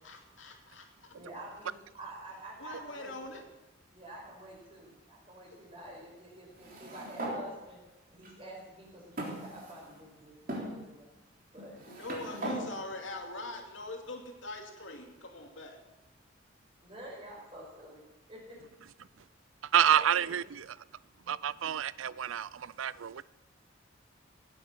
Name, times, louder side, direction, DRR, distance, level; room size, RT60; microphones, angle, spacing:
voice 1, 0.0-1.1 1.7-1.8 2.6-3.4 5.5-5.6 11.9-15.8, left 2 dB, 75° left, 2.5 m, -43 dB
voice 2, 1.1-3.4 3.9-7.8 8.1-11.1 11.5-11.8 12.5-12.7 16.8-18.0 18.3-18.6 19.9-20.3, right 1 dB, 30° right, 5.3 m, -48 dB
sound 1, 6.6-7.4 8.2-8.3 9.2-10.0 10.5-10.7 11.6-12.6, right 1 dB, 45° right, 3.4 m, -38 dB
voice 3, 19.7-20.8 21.3-23.2, right 9 dB, 85° right, 0.4 m, -28 dB
17.0 x 8.7 x 6.6 m
head